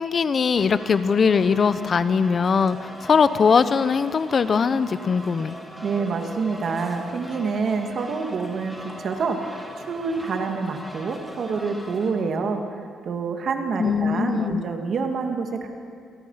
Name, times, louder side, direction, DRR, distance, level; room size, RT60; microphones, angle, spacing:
voice 1, 0.0-5.6 13.8-14.6, left 5 dB, 40° left, 13 dB, 0.9 m, -21 dB
sound 1, 0.5-12.1, equal, ahead, 3.8 m, -40 dB
voice 2, 5.8-15.7, right 4 dB, 55° right, 4 dB, 2.5 m, -27 dB
28.5 x 18.5 x 5.9 m, 2.4 s
cardioid pair, 110°, 0 cm